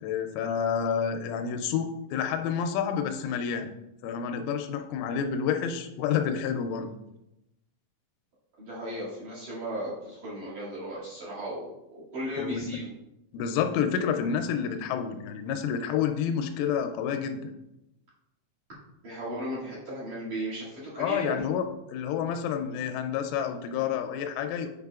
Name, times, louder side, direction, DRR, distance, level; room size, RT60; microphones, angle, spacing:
voice 1, 0.0-3.7 4.0-6.9 12.4-12.7 13.3-17.5 21.0-21.6 21.9-24.7, left 7 dB, 85° left, 7 dB, 3.1 m, -29 dB
voice 2, 8.6-12.9 19.0-21.4, equal, 50° right, -6 dB, 3.0 m, -35 dB
8.6 x 5.3 x 2.4 m, 0.89 s
omnidirectional pair, 5.6 m